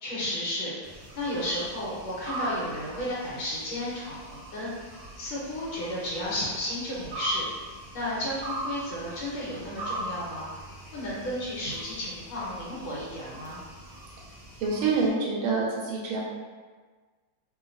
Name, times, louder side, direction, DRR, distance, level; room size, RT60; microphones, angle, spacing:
voice 1, 0.0-4.7 5.2-7.4 7.9-10.5 10.9-13.6, left 1 dB, 85° left, -7 dB, 1.9 m, -33 dB
sound 1, 0.8-15.1, right 1 dB, 70° right, 0.7 m, -41 dB
voice 2, 14.6-16.2, right 4 dB, 85° right, -3 dB, 1.5 m, -26 dB
4.0 x 2.3 x 2.4 m, 1.4 s
omnidirectional pair, 2.2 m